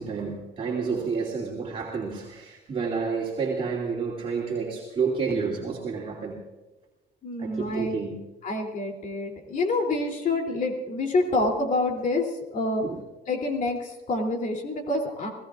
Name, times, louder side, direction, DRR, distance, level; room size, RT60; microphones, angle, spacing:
voice 1, 0.0-6.4 7.4-8.2 12.8-13.0, right 5 dB, 35° right, -3 dB, 2.9 m, -30 dB
voice 2, 7.2-8.0 8.4-12.8 13.3-15.3, left 2 dB, 50° left, 2 dB, 3.2 m, -27 dB
27.0 x 17.5 x 2.5 m, 1.1 s
cardioid pair, 110°, 17 cm